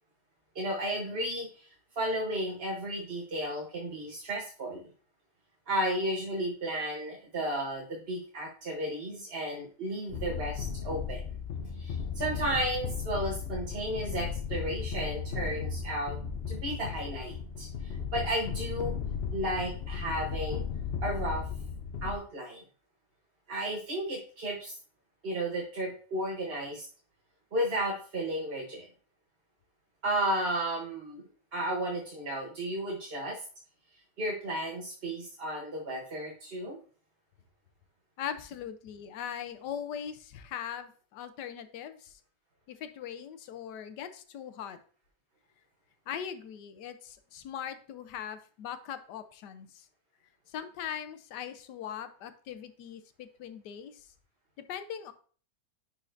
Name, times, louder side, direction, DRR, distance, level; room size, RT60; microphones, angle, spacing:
voice 1, 0.5-4.8 5.7-11.2 11.8-16.2 16.5-18.9 19.3-20.6 21.0-21.5 22.0-22.6 23.5-24.8 25.2-26.9 27.5-28.9 30.0-33.4 34.2-36.8, right 1 dB, 40° right, -2 dB, 1.1 m, -33 dB
sound 1, 10.1-22.1, left 6 dB, 65° left, 0.6 m, -35 dB
voice 2, 38.2-42.2 42.7-44.8 46.1-49.9 50.5-54.1 54.7-55.1, left 9 dB, 85° left, 11 dB, 1.3 m, -40 dB
10.5 x 4.6 x 2.6 m, 0.42 s
omnidirectional pair, 1.8 m